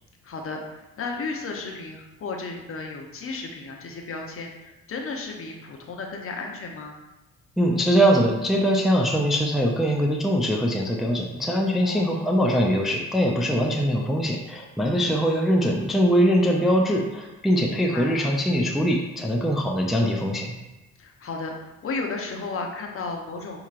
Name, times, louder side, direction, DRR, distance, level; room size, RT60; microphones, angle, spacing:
voice 1, 0.2-6.9 11.8-12.4 17.7-18.3 21.0-23.6, left 3 dB, 45° left, 2 dB, 0.7 m, -34 dB
voice 2, 7.6-20.5, equal, ahead, 0 dB, 0.4 m, -22 dB
5.4 x 2.9 x 2.5 m, 1.0 s
cardioid pair, 90°, 30 cm